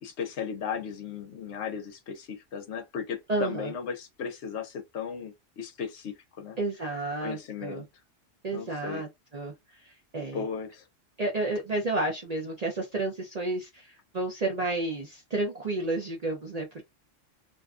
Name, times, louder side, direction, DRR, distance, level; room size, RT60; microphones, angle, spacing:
voice 1, 0.0-6.6 7.2-7.9 8.5-9.0 10.3-10.8, left 6 dB, 65° left, 0.9 m, -36 dB
voice 2, 3.3-3.7 6.6-7.8 8.4-9.5 9.8-10.4 11.2-16.8, right 2 dB, 45° right, 0.5 m, -31 dB
2.5 x 2.2 x 2.4 m
omnidirectional pair, 1.3 m